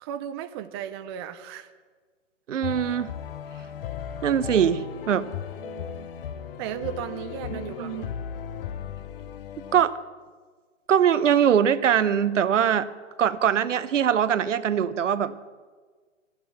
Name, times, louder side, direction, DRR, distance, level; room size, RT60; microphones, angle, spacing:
voice 1, 0.0-1.7 5.6-6.1 6.6-8.0, right 10 dB, 20° right, 9 dB, 0.4 m, -36 dB
voice 2, 2.5-3.1 4.2-5.3 7.5-8.0 9.7-9.9 10.9-12.9 13.2-15.5, right 8 dB, 70° right, 15 dB, 0.8 m, -22 dB
sound 1, 2.6-9.8, left 9 dB, 45° left, 0.9 m, -36 dB
12.0 x 9.0 x 8.2 m, 1.5 s
figure-of-eight pair, 120°, 38 cm